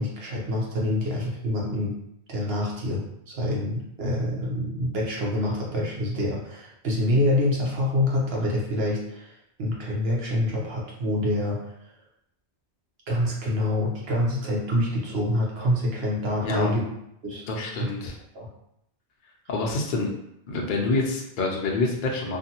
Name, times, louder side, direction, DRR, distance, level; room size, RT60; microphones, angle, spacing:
voice 1, 0.0-1.9 2.3-9.3 9.6-11.7 13.1-16.9 17.2-17.4 17.8-17.9 18.3-18.5, left 1 dB, 65° right, -3 dB, 1.0 m, -26 dB
voice 2, 17.5-18.1 19.5-20.1 20.5-22.4, left 3 dB, 55° left, -1 dB, 0.7 m, -27 dB
2.6 x 2.6 x 2.8 m, 0.77 s
omnidirectional pair, 1.1 m